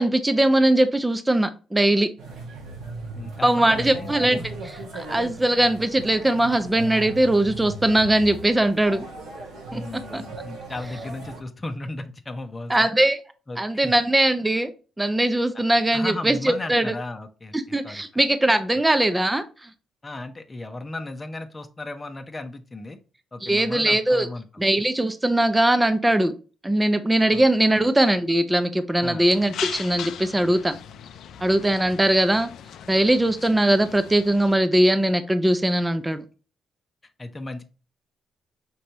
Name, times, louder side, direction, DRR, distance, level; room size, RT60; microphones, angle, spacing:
voice 1, 0.0-2.1 3.4-4.4 4.6-9.0 9.7-9.8 10.1-10.2 12.7-13.2 13.6-14.7 15.0-16.9 17.5-19.7 23.4-24.3 24.6-26.3 26.6-30.7 31.4-32.5 32.9-36.2, right 1 dB, 10° right, 9 dB, 0.5 m, -20 dB
sound 1, 2.2-11.4, right 3 dB, 90° right, 1.9 m, -38 dB
voice 2, 3.1-4.5 9.7-12.9 13.5-13.9 15.9-17.5 17.8-18.0 20.0-23.0 23.3-24.6 27.3-27.4 27.7-27.9 29.0-29.3 37.2-37.6, left 2 dB, 20° left, 5 dB, 0.8 m, -35 dB
sound 2, 29.3-34.6, left 8 dB, 75° left, 0.4 m, -38 dB
5.3 x 3.2 x 2.8 m, 0.34 s
cardioid pair, 90°, 0 cm